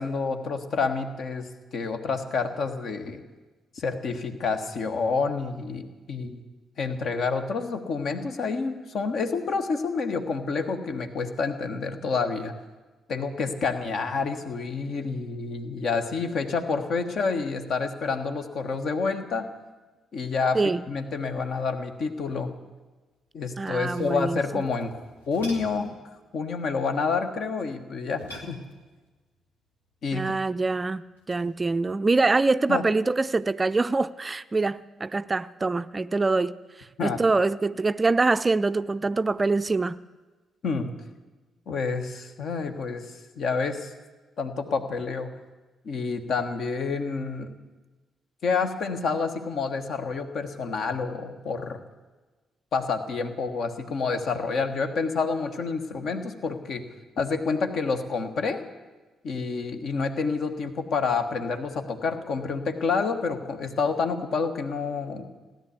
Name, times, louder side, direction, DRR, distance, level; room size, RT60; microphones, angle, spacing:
voice 1, 0.0-1.5 1.7-3.2 3.7-6.4 6.8-12.5 13.1-19.5 20.1-20.6 20.9-22.5 23.3-25.9 26.3-28.6 30.0-30.2 32.7-32.8 37.0-37.2 40.6-40.9 41.7-43.9 44.4-45.3 45.8-47.5 48.4-51.8 52.7-56.8 57.2-58.6 59.2-65.3, left 4 dB, 55° left, 1.4 m, -28 dB
voice 2, 23.6-24.6 30.1-36.6 37.0-40.0, right 3 dB, 30° right, 0.4 m, -24 dB
sound 1, 23.7-26.0 28.1-29.1 31.2-31.5, equal, 90° left, 1.8 m, -45 dB
16.5 x 10.5 x 8.1 m
figure-of-eight pair, 40°, 0 cm